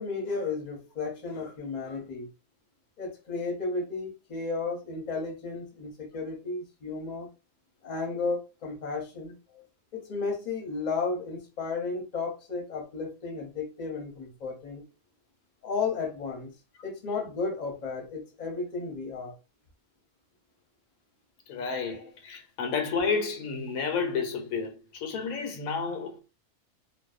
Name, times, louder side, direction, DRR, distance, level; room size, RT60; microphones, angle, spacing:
voice 1, 0.0-2.3 3.0-7.3 7.8-9.4 9.9-14.8 15.6-16.5 16.8-19.3, left 4 dB, 40° left, 0.7 m, -33 dB
voice 2, 21.5-26.2, left 5 dB, 85° left, 1.1 m, -31 dB
2.6 x 2.1 x 2.3 m
omnidirectional pair, 1.5 m